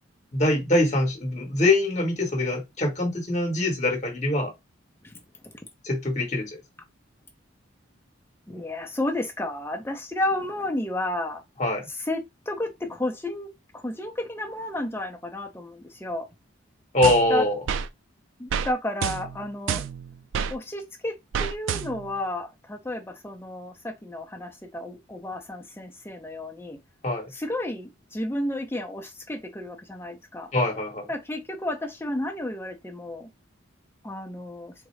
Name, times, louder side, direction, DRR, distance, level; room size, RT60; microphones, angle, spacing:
voice 1, 0.3-4.5 5.8-6.5 11.6-11.9 16.9-17.6 27.0-27.3 30.5-31.1, left 1 dB, 35° left, 1.0 m, -23 dB
voice 2, 5.0-5.5 8.5-11.4 11.9-16.3 17.3-17.5 18.4-19.8 20.5-26.8 27.3-30.5 31.1-33.3 34.0-34.7, left 1 dB, 10° left, 0.5 m, -32 dB
sound 1, 17.0-17.9 18.5-18.7 19.0-20.5 21.3-22.2, right 7 dB, 70° right, 0.3 m, -29 dB
3.6 x 2.0 x 3.1 m
head